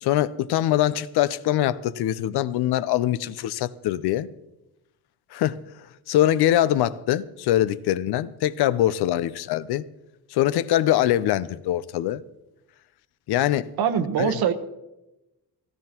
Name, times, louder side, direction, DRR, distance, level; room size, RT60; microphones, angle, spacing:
voice 1, 0.0-4.3 5.3-5.6 6.1-9.8 10.3-12.2 13.3-13.7 14.2-14.3, left 13 dB, 90° left, 0.6 m, -23 dB
voice 2, 13.8-14.5, right 8 dB, 75° right, 1.2 m, -22 dB
17.0 x 16.5 x 3.0 m
cardioid pair, 135°, 38 cm